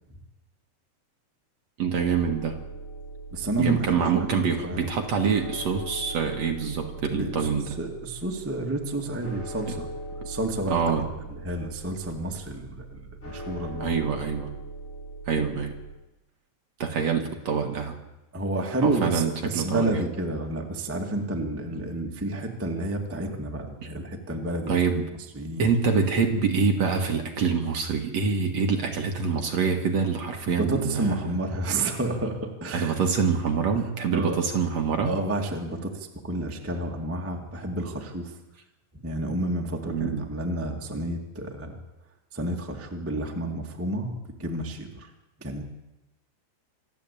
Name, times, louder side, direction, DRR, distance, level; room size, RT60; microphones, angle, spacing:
voice 1, 1.8-2.6 3.6-7.7 10.7-11.0 13.8-14.5 15.3-15.8 16.8-18.0 18.8-20.1 24.7-25.1 25.6-31.3 32.7-35.1 39.9-40.3, right 5 dB, 55° right, 3 dB, 2.1 m, -25 dB
sound 1, 1.9-15.9, right 2 dB, 15° left, 5.3 m, -40 dB
voice 2, 3.3-4.3 4.6-4.8 7.1-9.9 10.2-10.8 11.3-14.0 18.3-24.7 25.3-25.7 30.5-33.0 34.1-34.4 35.0-38.3 38.9-41.8 42.3-45.1 45.4-45.6, right 1 dB, 15° right, 1 dB, 0.5 m, -30 dB
26.5 x 11.5 x 8.5 m, 1.0 s
omnidirectional pair, 4.7 m